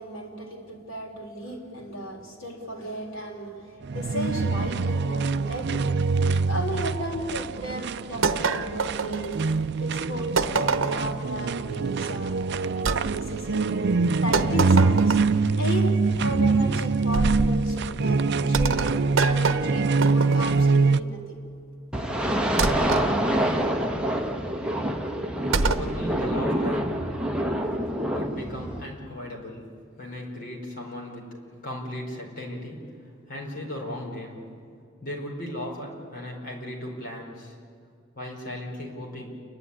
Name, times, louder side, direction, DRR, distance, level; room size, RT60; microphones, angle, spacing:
voice 1, 0.0-5.9 6.5-9.4 9.8-13.9 14.2-15.2 15.6-21.4, equal, 75° left, 0 dB, 4.0 m, -34 dB
sound 1, 3.8-21.0, right 4 dB, 60° right, 0.5 m, -24 dB
sound 2, 8.2-9.6 10.4-11.2 12.8-13.0 14.3-15.4 17.1-17.6 18.5-20.6 22.6-23.1 25.5-25.9, right 4 dB, 75° right, 0.9 m, -26 dB
sound 3, 21.9-28.9, equal, 5° right, 1.3 m, -26 dB
voice 2, 25.6-27.0 28.1-34.5 35.0-37.6 38.1-39.3, left 1 dB, 45° left, -1 dB, 4.7 m, -36 dB
29.0 x 11.5 x 9.8 m, 2.4 s
head